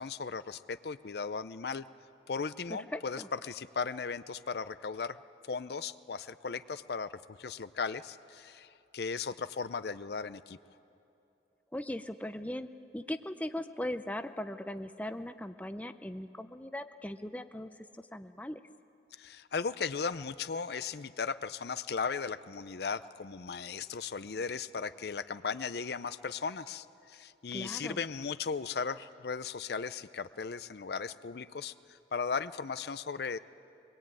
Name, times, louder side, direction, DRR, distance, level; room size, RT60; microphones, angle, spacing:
voice 1, 0.0-1.8 2.3-5.2 5.5-10.6 19.2-33.4, left 5 dB, 60° left, 14 dB, 0.5 m, -37 dB
voice 2, 2.7-3.3 11.7-12.7 12.9-17.7 18.0-18.6 27.5-28.0, left 1 dB, 10° left, 9 dB, 0.5 m, -39 dB
23.5 x 21.5 x 9.0 m, 2.7 s
head